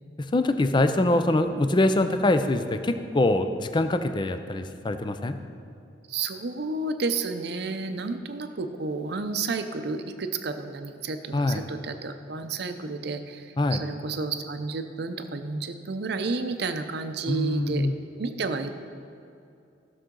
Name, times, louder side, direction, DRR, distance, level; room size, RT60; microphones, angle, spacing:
voice 1, 0.2-5.4 11.3-11.6 13.6-13.8 17.3-17.9, left 2 dB, 25° left, 8 dB, 0.5 m, -24 dB
voice 2, 6.1-17.9 18.2-18.7, right 4 dB, 65° right, 8 dB, 0.6 m, -31 dB
15.0 x 6.3 x 3.8 m, 2.6 s
head